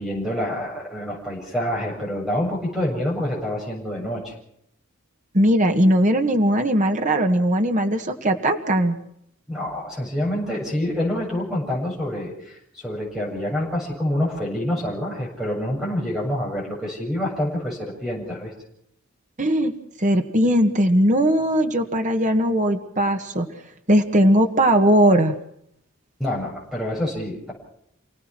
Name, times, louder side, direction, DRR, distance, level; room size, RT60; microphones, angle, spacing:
voice 1, 0.0-4.3 9.5-18.5 26.2-27.5, left 1 dB, ahead, -2 dB, 7.7 m, -27 dB
voice 2, 5.3-9.0 19.4-19.7 20.0-23.5 23.9-25.3, right 1 dB, 35° right, 5 dB, 1.9 m, -19 dB
29.5 x 18.0 x 6.3 m, 0.72 s
head